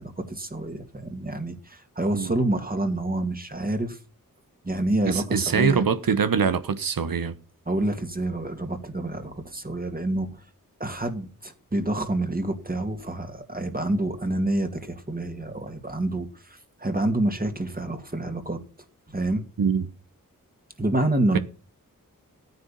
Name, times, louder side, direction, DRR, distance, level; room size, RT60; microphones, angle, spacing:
voice 1, 0.0-4.0 4.6-5.9 7.7-10.4 10.8-18.6 19.1-19.5 20.8-21.4, right 1 dB, 25° right, 2.4 m, -28 dB
voice 2, 5.0-7.4 19.6-19.9, right 6 dB, 80° right, 1.2 m, -23 dB
13.5 x 9.4 x 5.6 m
wide cardioid pair, 70°, 34 cm